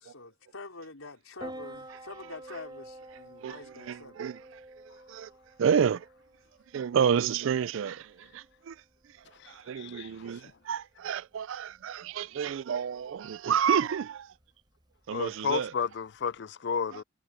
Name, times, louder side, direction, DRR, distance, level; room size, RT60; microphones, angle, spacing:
voice 1, 0.0-4.3, left 3 dB, 75° left, 4.7 m, -46 dB
Piano, 1.4-16.4, right 1 dB, 20° right, 5.3 m, -51 dB
voice 2, 3.4-4.6 4.9-5.3 5.6-6.1 6.7-8.8 9.5-14.3 15.1-15.7 16.9-17.0, right 7 dB, 65° right, 0.3 m, -30 dB
voice 3, 9.8-10.1 15.1-17.0, left 6 dB, 55° left, 0.4 m, -32 dB
head